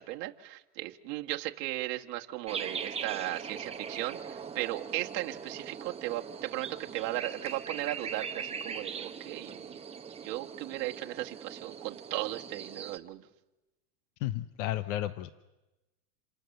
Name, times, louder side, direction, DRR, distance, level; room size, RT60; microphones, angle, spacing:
voice 1, 0.0-9.8 10.2-13.2, right 16 dB, 45° right, 2 dB, 1.7 m, -36 dB
sound 1, 2.5-13.0, right 6 dB, 15° right, 1.0 m, -41 dB
voice 2, 14.2-15.3, left 14 dB, 55° left, 13 dB, 1.0 m, -32 dB
28.5 x 26.5 x 6.7 m, 1.0 s
supercardioid pair, 130°, 47 cm